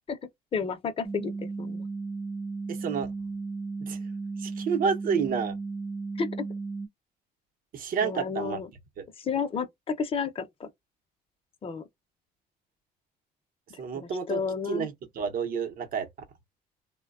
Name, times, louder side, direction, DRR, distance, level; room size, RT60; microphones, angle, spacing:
voice 1, 0.5-1.8 6.2-6.3 8.0-8.7 9.2-10.7 11.6-11.8 13.7-14.9, left 5 dB, 35° left, 0.6 m, -32 dB
sound 1, 1.0-6.9, right 3 dB, 10° right, 0.4 m, -35 dB
voice 2, 2.7-3.1 3.8-4.0 4.4-5.5 7.7-8.6 9.0-9.1 13.8-16.1, right 6 dB, 55° right, 0.8 m, -30 dB
3.0 x 2.2 x 2.4 m
cardioid pair, 110°, 17 cm